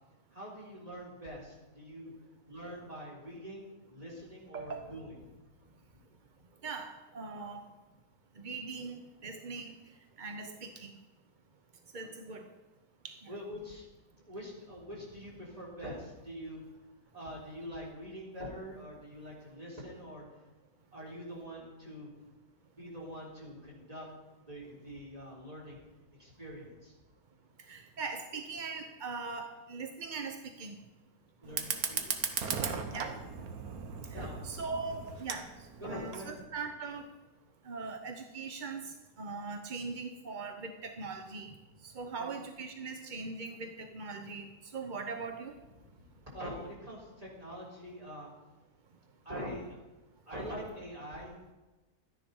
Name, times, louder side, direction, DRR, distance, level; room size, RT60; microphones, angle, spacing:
voice 1, 0.3-2.1 2.5-5.3 12.0-12.1 13.3-13.9 14.2-16.7 17.1-20.2 20.9-22.1 22.8-24.1 24.5-25.8 26.2-26.9 31.4-32.2 32.7-33.1 34.1-34.4 35.8-36.3 42.2-42.3 45.8-48.3 49.2-49.8 50.3-51.5, equal, 20° right, -4 dB, 3.7 m, -44 dB
voice 2, 4.5-4.8 6.6-7.6 8.4-9.7 10.2-10.9 11.9-12.5 13.0-13.3 27.7-30.8 32.9-33.1 34.4-35.5 35.8-37.1 37.6-41.5 41.8-45.5, right 4 dB, 45° right, 6 dB, 0.6 m, -40 dB
Fire, 31.4-36.4, right 6 dB, 60° right, 1.4 m, -37 dB
12.5 x 10.0 x 5.4 m, 1.1 s
omnidirectional pair, 1.8 m